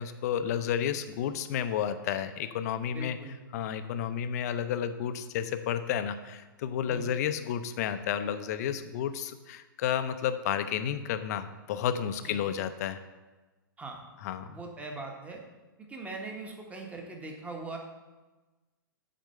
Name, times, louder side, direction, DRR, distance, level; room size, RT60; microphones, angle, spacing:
voice 1, 0.0-3.2 3.5-13.0 14.2-14.6, left 9 dB, 45° left, 10 dB, 0.6 m, -31 dB
voice 2, 2.9-3.4 6.9-7.1 12.2-12.4 13.8-14.0 14.5-15.4 15.9-17.8, right 3 dB, 10° right, 1 dB, 1.2 m, -41 dB
7.7 x 4.5 x 6.4 m, 1.2 s
figure-of-eight pair, 110°, 12 cm